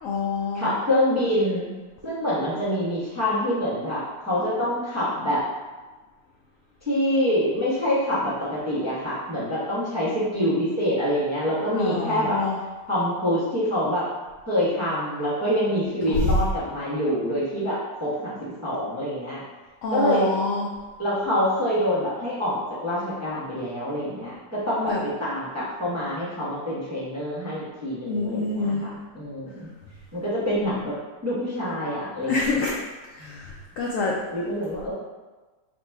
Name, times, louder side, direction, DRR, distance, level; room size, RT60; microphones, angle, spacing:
voice 1, 0.0-0.7 11.7-12.6 19.8-20.7 24.9-25.0 28.1-28.9 32.3-32.7 33.2-33.4 33.8-34.1, left 3 dB, 85° left, -2 dB, 0.7 m, -26 dB
voice 2, 0.5-1.7 2.0-5.4 6.9-12.4 12.9-14.0 14.5-18.4 18.6-19.4 19.9-20.3 21.0-29.7 30.1-30.9 31.2-32.6 33.2-33.4 34.3-34.9, equal, 20° right, -9 dB, 0.5 m, -26 dB
3.8 x 2.3 x 4.4 m, 1.3 s
omnidirectional pair, 1.9 m